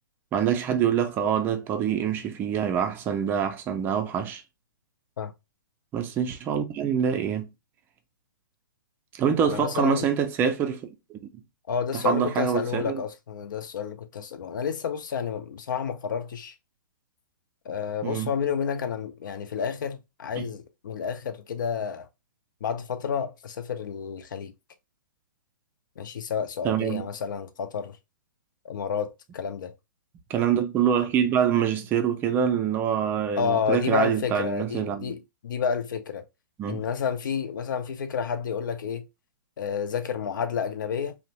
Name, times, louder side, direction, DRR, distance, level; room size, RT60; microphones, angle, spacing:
voice 1, 0.3-4.4 5.9-7.5 9.1-11.2 11.9-13.0 18.0-18.3 20.4-20.5 26.6-27.1 30.3-35.2 36.6-36.8, right 8 dB, 20° right, 0.4 m, -25 dB
voice 2, 9.4-10.1 11.7-16.5 17.7-22.1 22.6-24.5 26.0-28.0 28.6-29.7 33.4-36.2 36.7-39.1 39.6-41.2, left 7 dB, 65° left, 0.5 m, -30 dB
2.5 x 2.0 x 3.0 m
hypercardioid pair, 135°, 11 cm